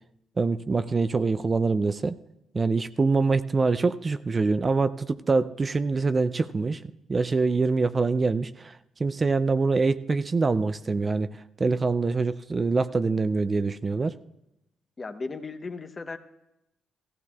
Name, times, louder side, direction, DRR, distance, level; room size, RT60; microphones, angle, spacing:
voice 1, 0.4-2.2 2.5-6.8 7.1-14.1, right 4 dB, 30° right, 12 dB, 0.4 m, -25 dB
voice 2, 15.0-16.2, left 3 dB, 30° left, 8 dB, 0.8 m, -36 dB
16.5 x 15.0 x 2.4 m, 0.90 s
cardioid pair, 90°, 0 cm